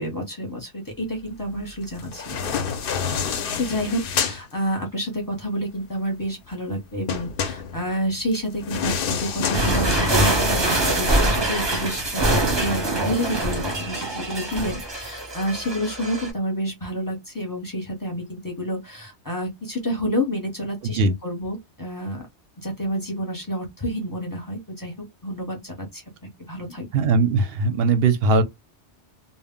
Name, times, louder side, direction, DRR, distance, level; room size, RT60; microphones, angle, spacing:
voice 1, 0.0-2.5 3.6-22.2 22.6-24.9 25.2-26.9, equal, 20° left, 0.7 m, -29 dB
sound 1, 2.0-4.4 7.1-10.5, left 6 dB, 60° left, 0.6 m, -28 dB
sound 2, 9.5-16.3, right 1 dB, 25° right, 0.7 m, -23 dB
voice 2, 26.9-28.4, right 3 dB, 65° right, 0.7 m, -19 dB
2.1 x 2.0 x 3.6 m
omnidirectional pair, 1.2 m